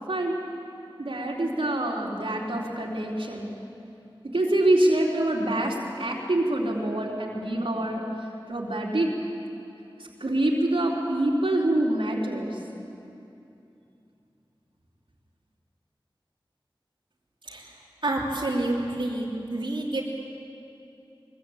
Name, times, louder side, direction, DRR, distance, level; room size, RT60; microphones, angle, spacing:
voice 1, 1.0-3.5 4.3-8.0 8.5-9.1 10.0-12.6, right 1 dB, 85° right, -3 dB, 3.9 m, -25 dB
voice 2, 18.0-20.0, right 2 dB, 65° right, -5 dB, 3.1 m, -28 dB
23.0 x 22.0 x 9.0 m, 2.7 s
wide cardioid pair, 50°, 9 cm